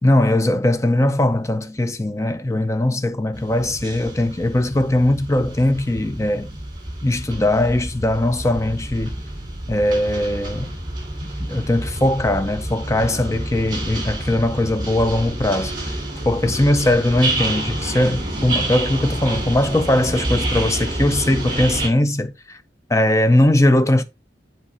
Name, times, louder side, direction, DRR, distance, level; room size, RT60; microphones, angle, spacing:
voice 1, 0.0-6.6 7.0-9.2 9.7-10.7 11.2-15.9 16.2-22.6 22.9-24.0, left 1 dB, 15° left, 0.6 m, -20 dB
sound 1, 3.3-21.9, right 1 dB, 25° right, 2.9 m, -28 dB
7.6 x 4.4 x 4.3 m
head